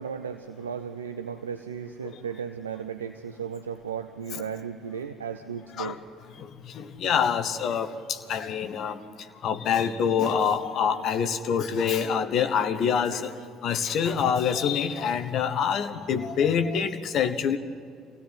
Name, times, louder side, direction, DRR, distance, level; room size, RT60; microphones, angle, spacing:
voice 1, 0.0-6.0, right 7 dB, 80° right, 9 dB, 0.6 m, -35 dB
voice 2, 6.4-9.0 9.4-13.3 13.6-17.6, left 7 dB, 50° left, 9 dB, 1.2 m, -26 dB
25.0 x 17.0 x 9.3 m, 2.3 s
figure-of-eight pair, 55°, 0 cm